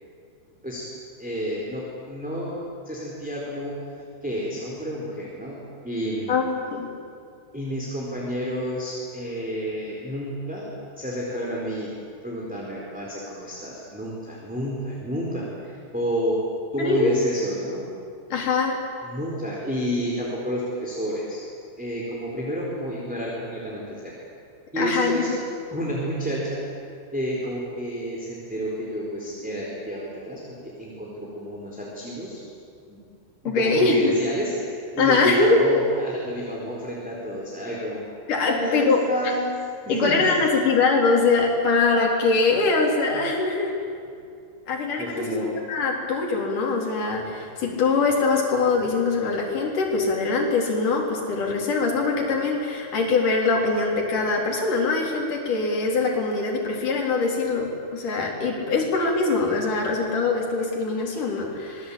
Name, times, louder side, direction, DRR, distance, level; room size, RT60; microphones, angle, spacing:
voice 1, 1.2-3.8 4.2-6.4 7.5-10.7 11.0-11.9 12.2-16.4 16.7-17.8 19.0-21.4 21.8-24.1 24.7-25.3 25.7-26.7 27.1-32.4 32.9-33.0 33.4-38.0 38.5-39.5 39.8-40.4 45.0-45.6, equal, ahead, -5 dB, 3.6 m, -30 dB
voice 2, 6.3-6.9 16.8-17.2 18.3-18.8 24.8-25.4 33.4-34.1 35.0-35.7 38.3-39.0 39.9-43.7 44.7-61.9, left 3 dB, 45° left, 0 dB, 5.0 m, -23 dB
26.0 x 20.5 x 8.9 m, 2.4 s
omnidirectional pair, 5.3 m